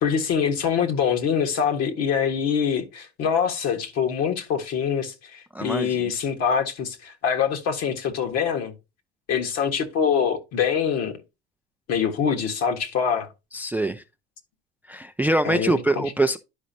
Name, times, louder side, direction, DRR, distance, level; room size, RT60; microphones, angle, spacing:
voice 1, 0.0-8.7 9.3-11.1 11.9-13.3 15.4-16.1, left 7 dB, 55° left, 1.6 m, -24 dB
voice 2, 5.5-6.0 13.5-14.0 14.9-16.4, right 2 dB, 5° right, 0.4 m, -24 dB
11.0 x 5.0 x 2.8 m
hypercardioid pair, 65°, 31 cm